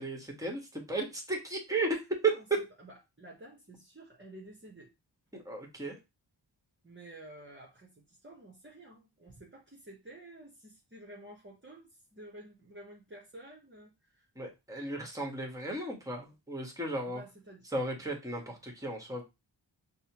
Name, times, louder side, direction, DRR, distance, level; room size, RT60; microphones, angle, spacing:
voice 1, 0.0-2.3 5.3-6.0 14.3-17.2 17.7-19.2, right 3 dB, 5° right, 0 dB, 1.3 m, -34 dB
voice 2, 2.3-4.9 6.8-14.3 17.1-17.6, right 1 dB, 25° right, -1 dB, 1.0 m, -51 dB
5.3 x 2.1 x 2.9 m, 0.24 s
cardioid pair, 50°, 45 cm